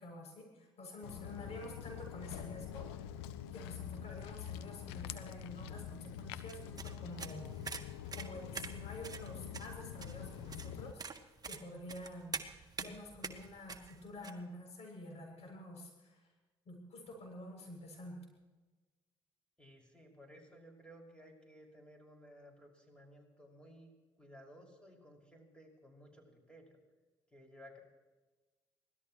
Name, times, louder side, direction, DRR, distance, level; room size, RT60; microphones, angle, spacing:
voice 1, 0.0-3.2 3.5-16.3 16.7-18.3, left 1 dB, 50° left, 1 dB, 7.1 m, -49 dB
Walk footsteps, 1.0-10.9, left 10 dB, 75° left, 0.8 m, -46 dB
sound 1, 6.5-14.3, right 5 dB, 30° right, 1.6 m, -46 dB
voice 2, 19.6-23.9 24.2-26.8 27.3-27.8, equal, 5° left, 0 dB, 5.9 m, -57 dB
25.0 x 18.0 x 3.1 m, 1.2 s
hypercardioid pair, 50°, 14 cm